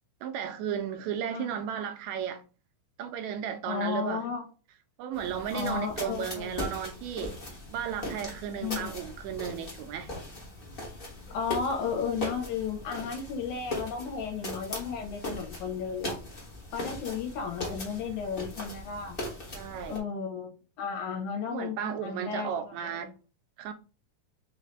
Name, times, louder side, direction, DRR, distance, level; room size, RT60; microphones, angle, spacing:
voice 1, 0.2-2.4 3.0-4.3 5.0-7.4 7.7-10.1 19.5-20.0 21.5-23.1 23.6-23.7, right 8 dB, 80° right, 1.7 m, -34 dB
voice 2, 3.7-4.4 5.5-6.5 8.6-8.9 11.3-16.2 16.7-19.2 19.9-22.5 22.9-23.1, left 6 dB, 75° left, 2.2 m, -34 dB
sound 1, 5.1-20.0, left 1 dB, 50° left, 0.6 m, -39 dB
4.9 x 2.7 x 3.4 m
omnidirectional pair, 3.5 m